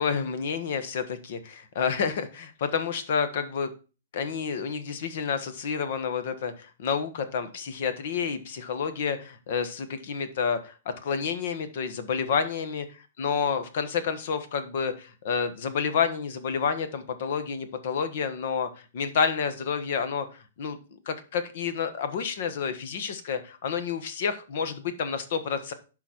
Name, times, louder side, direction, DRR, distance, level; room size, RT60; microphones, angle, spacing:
voice 1, 0.0-3.7 4.1-10.7 11.0-12.8 13.2-20.3 20.6-20.8 21.1-25.7, left 6 dB, 55° left, 10 dB, 1.2 m, -29 dB
11.0 x 4.0 x 4.4 m, 0.34 s
hypercardioid pair, 160°, 0 cm